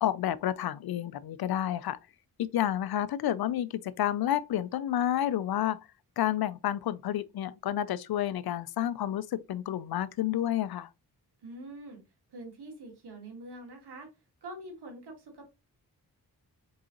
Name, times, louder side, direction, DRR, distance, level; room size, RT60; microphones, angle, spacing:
voice 1, 0.0-2.0 2.4-5.9 6.2-10.9, left 11 dB, 70° left, 0.5 m, -30 dB
voice 2, 11.4-12.0 12.3-14.1 14.4-15.5, right 1 dB, 80° right, 1.8 m, -45 dB
4.7 x 3.7 x 2.9 m
cardioid pair, 45°, 40 cm